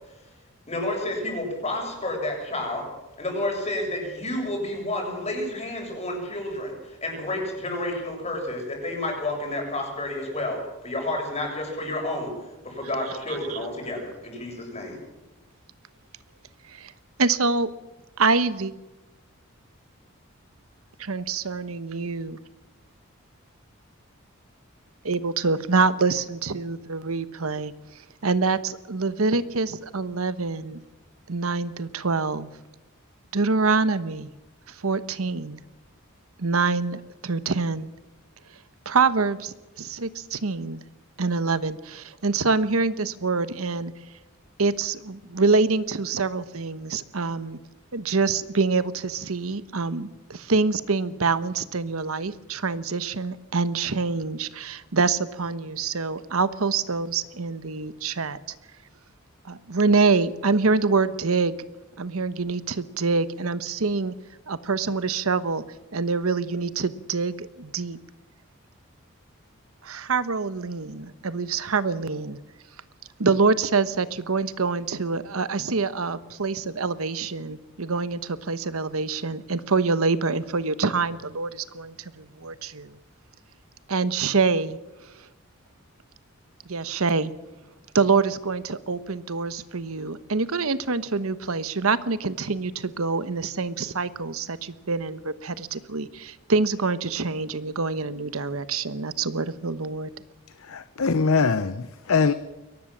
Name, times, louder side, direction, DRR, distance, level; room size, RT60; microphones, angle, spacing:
voice 1, 0.7-2.8 3.2-12.3 12.6-15.0, left 1 dB, 30° left, 1 dB, 7.0 m, -30 dB
voice 2, 13.3-13.6 16.7-16.9 17.2-17.7 18.2-18.7 21.0-22.4 25.0-27.7 28.2-30.8 31.3-32.5 33.3-34.3 34.7-35.6 36.4-37.9 38.8-40.8 41.2-43.9 44.6-47.6 47.9-58.4 59.4-61.6 62.0-64.1 64.5-65.6 65.9-68.0 69.8-72.4 73.2-83.0 83.9-84.8 86.7-87.3 87.9-100.1, right 4 dB, 85° right, 14 dB, 1.1 m, -25 dB
voice 3, 100.6-102.3, left 5 dB, 85° left, 13 dB, 0.8 m, -22 dB
22.5 x 18.0 x 7.4 m, 1.1 s
head